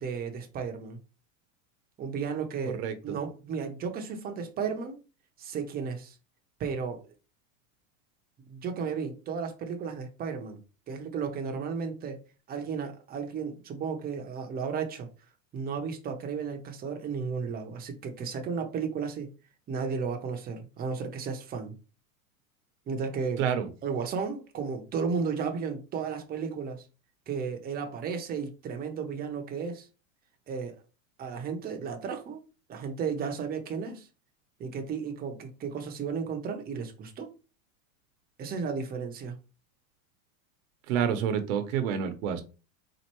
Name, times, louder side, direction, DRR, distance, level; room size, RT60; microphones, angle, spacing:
voice 1, 0.0-1.0 2.0-5.0 5.4-6.2 6.6-7.0 8.4-10.6 10.9-12.2 12.5-15.1 15.5-19.3 19.7-21.7 22.9-23.4 23.8-26.8 27.3-29.9 30.5-30.8 31.2-32.4 32.7-34.1 34.6-37.3 38.4-39.3, right 5 dB, 25° right, 0.7 m, -34 dB
voice 2, 2.8-3.1 23.4-23.7 40.9-42.4, right 8 dB, 70° right, 0.8 m, -28 dB
4.3 x 2.5 x 3.0 m
supercardioid pair, 135°, 40 cm